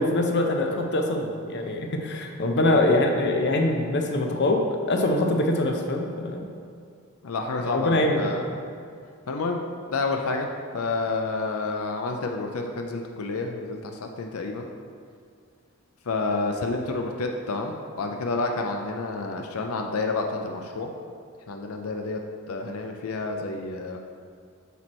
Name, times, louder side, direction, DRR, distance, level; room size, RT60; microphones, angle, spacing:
voice 1, 0.0-4.6 4.9-6.5 7.6-8.4, left 1 dB, 55° left, 3 dB, 0.7 m, -24 dB
voice 2, 7.2-8.5 9.3-9.6 9.9-10.5 10.7-14.7 16.1-20.9 21.5-22.2 22.5-24.0, left 3 dB, 90° left, 3 dB, 0.6 m, -29 dB
7.0 x 6.1 x 4.3 m, 2.2 s
head